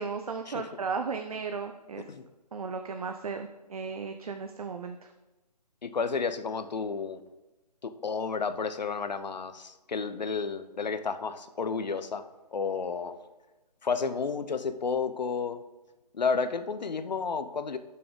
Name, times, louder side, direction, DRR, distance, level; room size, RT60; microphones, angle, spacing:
voice 1, 0.0-2.0 2.5-5.1, right 5 dB, 60° right, 6 dB, 0.8 m, -35 dB
voice 2, 5.8-7.2 7.8-12.3 12.5-13.2 13.8-15.6 16.1-17.8, left 5 dB, 85° left, 11 dB, 1.0 m, -31 dB
10.5 x 6.8 x 5.3 m, 1.1 s
hypercardioid pair, 170°, 21 cm